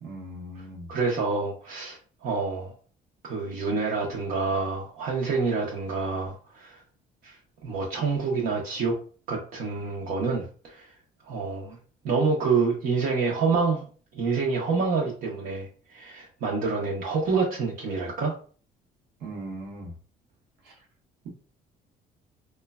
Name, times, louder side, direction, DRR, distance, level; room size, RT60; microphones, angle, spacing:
voice 1, 0.0-0.9 19.2-19.9 20.7-20.8, right 1 dB, 90° right, 0 dB, 0.9 m, -39 dB
voice 2, 0.9-2.7 3.2-6.8 7.2-7.4 7.6-9.0 9.3-10.9 11.3-11.8 12.0-13.8 14.1-18.3, right 4 dB, 65° right, -3 dB, 0.7 m, -27 dB
3.1 x 2.1 x 2.2 m, 0.41 s
cardioid pair, 110°, 17 cm